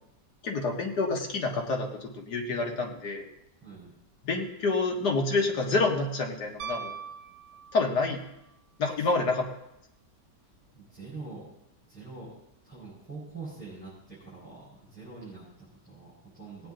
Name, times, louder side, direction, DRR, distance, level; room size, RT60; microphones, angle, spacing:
voice 1, 0.4-3.2 4.2-6.9 7.7-8.2 8.8-9.5, left 3 dB, 70° left, 1 dB, 2.2 m, -28 dB
voice 2, 3.6-3.9 9.0-9.1 10.4-11.5 11.8-16.7, right 3 dB, 5° right, -9 dB, 5.7 m, -45 dB
Piano, 6.6-8.2 10.5-10.6, right 7 dB, 75° right, 1.4 m, -40 dB
19.5 x 9.0 x 3.9 m, 0.83 s
omnidirectional pair, 1.8 m